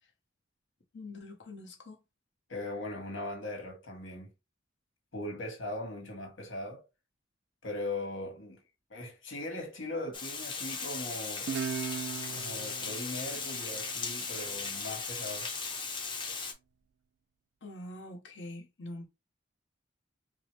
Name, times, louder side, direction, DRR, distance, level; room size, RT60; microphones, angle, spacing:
voice 1, 0.9-2.0 17.6-19.1, left 1 dB, 65° left, 1.0 m, -44 dB
voice 2, 2.5-4.3 5.1-6.8 7.6-8.6 8.9-11.5 12.2-15.5, left 2 dB, 80° left, 1.6 m, -39 dB
Water, 10.1-16.5, left 4 dB, 25° left, 0.7 m, -37 dB
Guitar, 11.5-14.7, right 7 dB, 60° right, 0.3 m, -39 dB
4.6 x 2.0 x 3.2 m
head